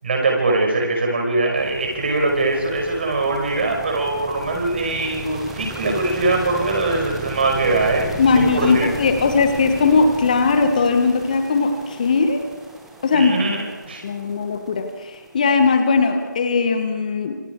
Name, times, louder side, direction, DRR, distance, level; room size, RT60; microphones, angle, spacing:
voice 1, 0.0-8.9 13.1-14.0, right 2 dB, 35° right, 1 dB, 5.9 m, -22 dB
sound 1, 1.6-16.7, right 1 dB, ahead, 1.1 m, -37 dB
voice 2, 8.2-12.4 13.0-13.6 14.0-17.4, left 4 dB, 25° left, 7 dB, 1.7 m, -19 dB
27.5 x 25.5 x 4.8 m, 1.3 s
figure-of-eight pair, 160°, 10 cm